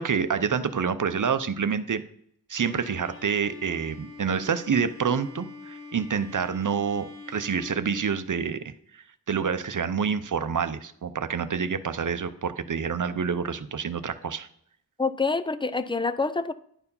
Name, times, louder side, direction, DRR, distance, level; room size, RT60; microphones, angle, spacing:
voice 1, 0.0-2.0 2.5-14.5, right 6 dB, 55° right, 12 dB, 0.7 m, -28 dB
Bowed string instrument, 2.7-8.6, left 3 dB, 65° left, 4.1 m, -44 dB
voice 2, 15.0-16.5, left 4 dB, 15° left, 12 dB, 0.4 m, -26 dB
11.0 x 4.6 x 5.5 m, 0.68 s
wide cardioid pair, 80°, 38 cm